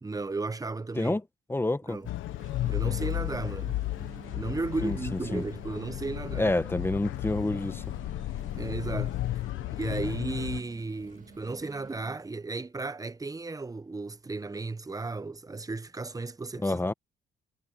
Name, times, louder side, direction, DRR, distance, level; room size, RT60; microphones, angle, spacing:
voice 1, 0.0-1.2 1.9-2.1 2.7-3.8 4.3-6.5 8.5-9.1 9.7-16.8, right 3 dB, 15° right, 0.9 m, -35 dB
voice 2, 1.5-2.0 4.8-5.4 6.4-7.8 10.0-10.1 16.6-16.9, left 2 dB, 10° left, 1.1 m, -28 dB
sound 1, 1.9-13.0, left 5 dB, 40° left, 5.9 m, -60 dB
sound 2, 2.1-10.6, left 15 dB, 85° left, 1.1 m, -34 dB
sound 3, 2.3-12.3, right 6 dB, 40° right, 2.5 m, -50 dB
cardioid pair, 90°, 20 cm